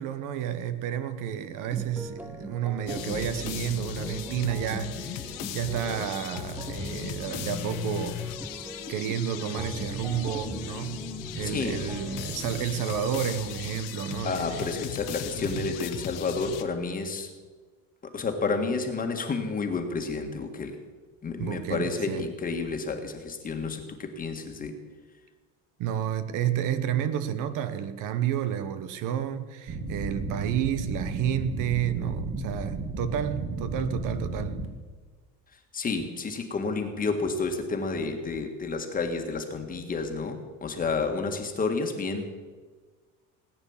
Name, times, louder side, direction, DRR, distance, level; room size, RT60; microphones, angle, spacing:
voice 1, 0.0-8.2 8.9-11.0 11.3-14.7 15.4-15.7 21.4-22.3 25.8-34.6, right 9 dB, 65° right, 11 dB, 1.2 m, -31 dB
sound 1, 1.7-12.7, right 1 dB, 5° right, 0.6 m, -41 dB
sound 2, 2.9-16.6, left 11 dB, 65° left, 1.4 m, -37 dB
voice 2, 11.4-11.9 14.2-17.3 18.0-20.8 21.2-24.7 35.7-42.3, left 4 dB, 25° left, 5 dB, 1.7 m, -30 dB
sound 3, 29.7-34.7, right 2 dB, 35° right, 2.0 m, -33 dB
18.5 x 9.7 x 7.3 m, 1.4 s
cardioid pair, 155°, 34 cm